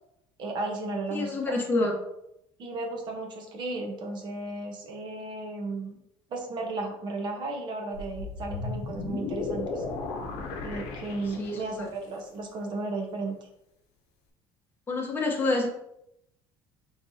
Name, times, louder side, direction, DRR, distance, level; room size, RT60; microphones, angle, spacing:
voice 1, 0.4-1.5 2.6-6.0 6.3-9.8 10.6-13.4, right 2 dB, 45° right, 2 dB, 1.0 m, -34 dB
voice 2, 1.1-1.9 11.4-11.9 14.9-15.7, left 2 dB, 20° left, -1 dB, 1.0 m, -27 dB
sound 1, 7.9-11.9, left 3 dB, 70° left, 0.8 m, -35 dB
5.1 x 3.2 x 2.8 m, 0.81 s
cardioid pair, 135°, 11 cm